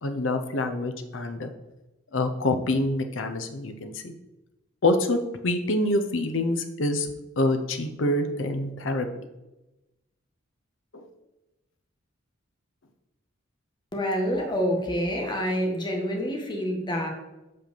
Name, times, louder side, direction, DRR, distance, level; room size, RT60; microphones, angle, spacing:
voice 1, 0.0-1.5 2.1-4.1 4.8-9.1 10.9-11.1, left 2 dB, 70° left, 6 dB, 0.8 m, -26 dB
voice 2, 13.9-17.1, equal, 25° left, 1 dB, 1.5 m, -27 dB
5.9 x 5.5 x 6.9 m, 0.99 s
head